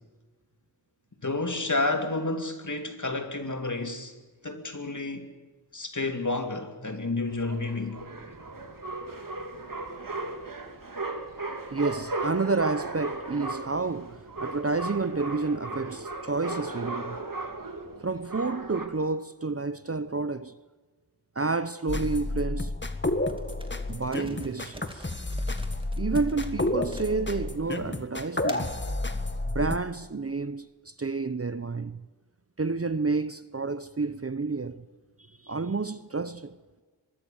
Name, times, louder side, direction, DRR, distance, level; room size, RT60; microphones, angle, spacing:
voice 1, 1.2-4.1 4.4-5.3 5.7-8.0, left 2 dB, 45° left, 3.0 m, -30 dB
sound 1, 7.3-18.9, right 2 dB, 50° right, 2.7 m, -36 dB
voice 2, 11.7-17.2 18.0-20.5 21.4-22.7 23.9-25.1 26.0-28.8 29.4-32.1 32.6-34.9 35.3-36.6, right 3 dB, 35° right, 0.8 m, -30 dB
sound 2, 21.9-29.8, left 2 dB, 25° left, 1.8 m, -30 dB
sound 3, 23.3-27.6 28.2-28.8, right 1 dB, 10° right, 2.6 m, -47 dB
23.5 x 22.0 x 7.2 m
wide cardioid pair, 70°, 43 cm